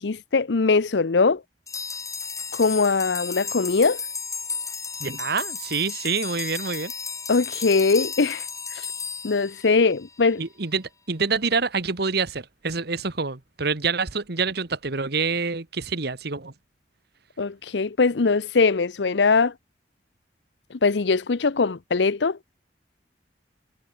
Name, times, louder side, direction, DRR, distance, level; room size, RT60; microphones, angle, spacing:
voice 1, 0.0-1.4 2.5-4.0 7.3-8.9 9.2-10.4 17.4-19.5 20.7-22.4, left 4 dB, 70° left, 0.7 m, -21 dB
sound 1, 1.7-10.2, left 5 dB, 20° left, 3.2 m, -34 dB
voice 2, 5.0-6.9 10.4-16.5, right 4 dB, 60° right, 1.4 m, -27 dB
head